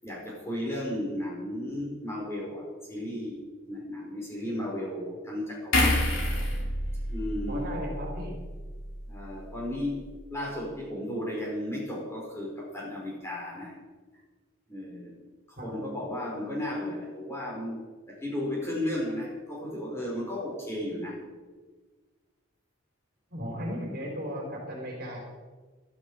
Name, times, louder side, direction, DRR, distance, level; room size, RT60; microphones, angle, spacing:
voice 1, 0.0-3.4 3.7-6.1 7.1-7.8 9.1-10.0 10.3-13.8 14.7-15.1 15.5-17.8 18.1-21.2, left 1 dB, 15° left, -4 dB, 5.2 m, -34 dB
sound 1, 5.7-9.1 9.4-9.6, left 1 dB, 75° left, 5.6 m, -29 dB
voice 2, 7.5-8.3 15.6-15.7 23.3-25.2, equal, 45° right, 0 dB, 4.0 m, -36 dB
16.5 x 13.0 x 5.0 m, 1.3 s
head